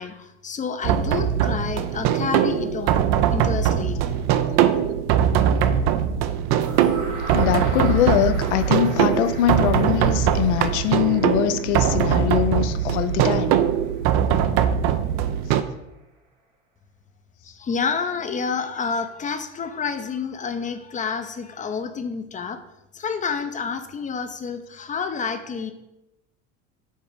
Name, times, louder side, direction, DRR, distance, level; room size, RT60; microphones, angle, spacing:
voice 1, 0.0-3.0 3.3-4.0 17.4-22.6 22.9-25.7, left 5 dB, 20° left, 0.6 m, -29 dB
sound 1, 0.8-15.6, right 9 dB, 50° right, 0.5 m, -21 dB
sound 2, 6.6-14.5, equal, 80° right, 1.6 m, -38 dB
voice 2, 7.3-13.6, left 12 dB, 75° left, 0.5 m, -22 dB
5.4 x 3.5 x 5.0 m
hypercardioid pair, 80°, 35 cm